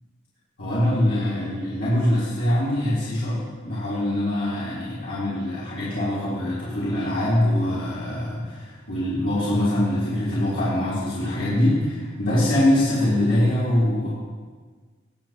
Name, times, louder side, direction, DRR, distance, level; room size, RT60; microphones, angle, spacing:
voice 1, 0.6-14.1, left 1 dB, 75° left, -12 dB, 3.6 m, -23 dB
20.5 x 7.2 x 3.0 m, 1.5 s
head